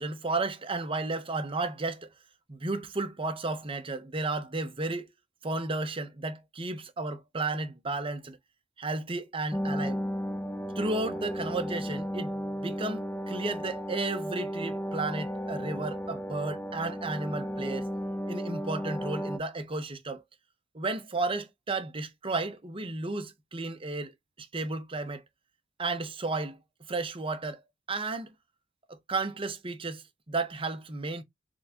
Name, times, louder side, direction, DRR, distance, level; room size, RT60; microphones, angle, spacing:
voice 1, 0.0-2.1 2.5-5.1 5.4-8.4 8.8-10.0 10.8-17.9 18.3-20.2 20.7-25.2 25.8-26.6 26.9-28.3 28.9-31.2, right 3 dB, 30° right, 0.8 m, -33 dB
sound 1, 9.5-19.4, equal, 10° left, 0.3 m, -34 dB
3.7 x 3.5 x 2.8 m
head